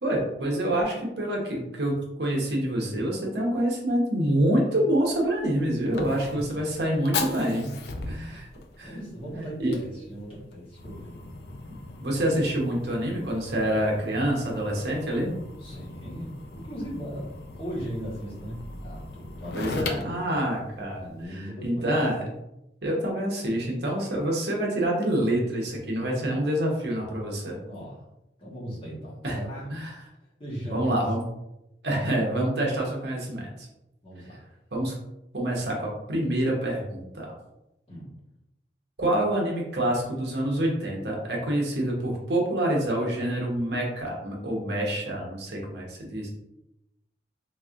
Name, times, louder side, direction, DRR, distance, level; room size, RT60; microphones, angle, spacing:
voice 1, 0.0-7.8 8.1-8.5 8.8-8.9 9.6-9.8 12.0-15.4 19.5-22.2 22.8-27.6 29.2-29.4 29.7-29.9 30.7-31.2 31.8-33.7 34.7-35.0 35.3-37.3 39.0-46.3, right 1 dB, 65° right, -1 dB, 0.9 m, -27 dB
Fire, 5.0-21.2, left 3 dB, 60° left, 0.4 m, -39 dB
voice 2, 6.1-6.6 7.8-8.4 8.8-11.2 15.6-20.4 21.0-22.0 27.6-28.0 28.4-29.7 30.4-31.0 34.0-34.4 37.9-38.1, equal, 30° left, -6 dB, 1.2 m, -38 dB
3.6 x 3.1 x 2.5 m, 0.88 s
head